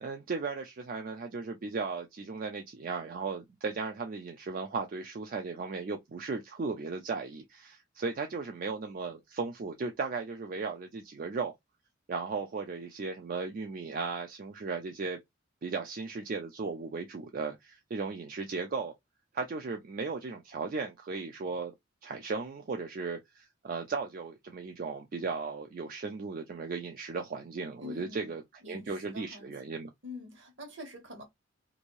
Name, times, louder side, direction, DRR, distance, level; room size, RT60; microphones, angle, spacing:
voice 1, 0.0-11.5 12.1-15.2 15.6-18.9 19.3-21.7 22.0-29.9, right 4 dB, 45° right, 0.4 m, -36 dB
voice 2, 27.8-28.3 28.6-29.7 30.0-31.2, left 2 dB, 65° right, 1.3 m, -46 dB
2.6 x 2.6 x 3.0 m
head